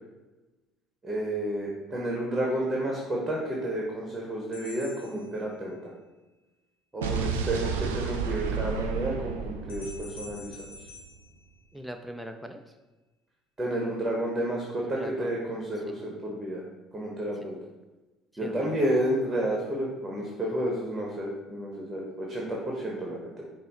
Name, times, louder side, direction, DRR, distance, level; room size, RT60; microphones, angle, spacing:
voice 1, 1.0-5.9 6.9-10.7 13.6-16.6 16.9-17.6 18.4-23.3, right 1 dB, 15° right, -2 dB, 1.0 m, -31 dB
sound 1, 4.5-6.1 9.7-12.2, left 3 dB, 75° left, 0.5 m, -48 dB
Explosion, 7.0-11.1, right 6 dB, 75° right, 0.3 m, -32 dB
voice 2, 11.7-12.7 14.8-15.3 15.9-16.0 18.4-18.9, equal, ahead, 4 dB, 0.4 m, -41 dB
5.4 x 2.1 x 4.2 m, 1.1 s
figure-of-eight pair, 55°, 0 cm